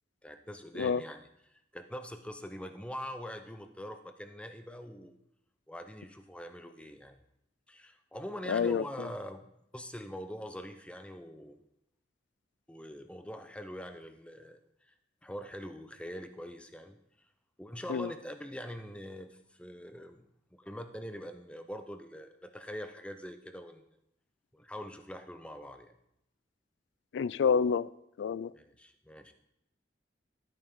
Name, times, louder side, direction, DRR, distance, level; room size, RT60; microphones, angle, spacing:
voice 1, 0.2-5.2 5.7-7.2 7.7-11.6 12.7-14.9 15.2-17.0 17.6-20.3 20.5-23.8 24.5-26.0 28.5-29.3, equal, 5° left, 8 dB, 0.6 m, -43 dB
voice 2, 8.5-9.1 17.9-18.1 27.1-27.9 28.2-28.5, left 6 dB, 75° left, 19 dB, 0.3 m, -28 dB
12.5 x 9.0 x 3.7 m, 0.80 s
head